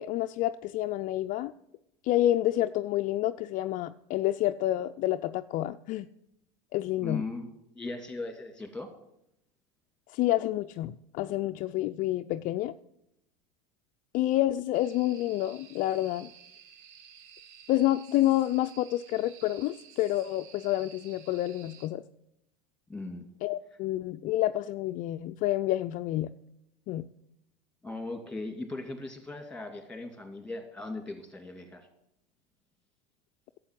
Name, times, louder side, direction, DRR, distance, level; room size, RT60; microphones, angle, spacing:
voice 1, 0.0-1.5 2.0-6.1 6.7-7.2 10.1-12.7 14.1-16.3 17.7-22.0 23.4-26.3 26.9-27.1, left 14 dB, 45° left, 9 dB, 0.4 m, -28 dB
voice 2, 7.0-7.5 7.7-8.9 22.9-23.3 27.8-31.9, left 2 dB, 5° left, 5 dB, 2.5 m, -38 dB
sound 1, 14.7-21.9, right 7 dB, 65° right, 1.3 m, -53 dB
11.5 x 7.8 x 7.5 m, 0.80 s
hypercardioid pair, 100°, 18 cm